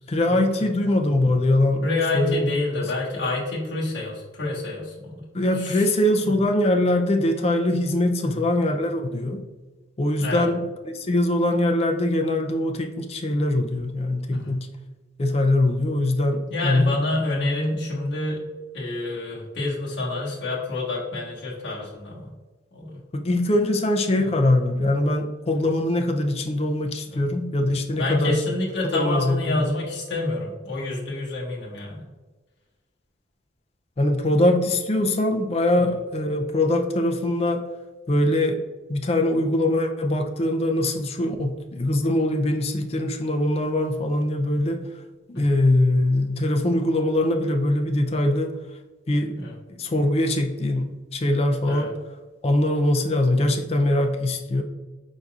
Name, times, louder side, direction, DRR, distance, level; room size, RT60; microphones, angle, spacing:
voice 1, 0.1-1.8 2.1-2.5 2.8-2.9 5.3-9.4 10.0-14.7 15.2-17.0 23.1-28.4 28.9-29.7 34.0-37.6 38.1-38.6 38.9-44.8 45.3-48.5 49.1-49.4 49.7-51.9 52.4-54.6, left 1 dB, 30° left, 4 dB, 0.4 m, -22 dB
voice 2, 1.8-5.3 5.6-5.8 8.2-8.4 10.2-10.4 14.3-14.6 16.5-18.4 18.7-22.3 22.7-23.0 27.1-27.2 28.0-32.0 45.3-45.4 49.3-49.5 51.6-51.9, left 2 dB, 60° left, -5 dB, 1.3 m, -28 dB
4.6 x 4.0 x 2.4 m, 1.2 s
head